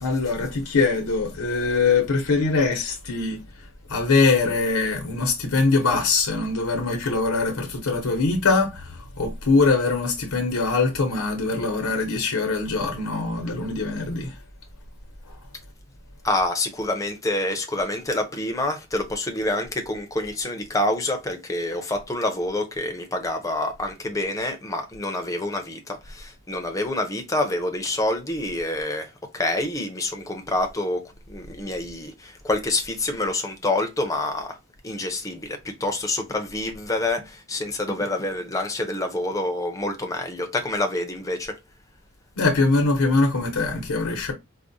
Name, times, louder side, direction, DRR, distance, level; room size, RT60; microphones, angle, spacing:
voice 1, 0.0-14.4 15.3-15.4 42.4-44.3, left 3 dB, 80° left, 0.8 m, -23 dB
voice 2, 16.2-34.6 34.8-41.6, left 2 dB, 15° left, 0.6 m, -27 dB
4.7 x 2.1 x 2.6 m
head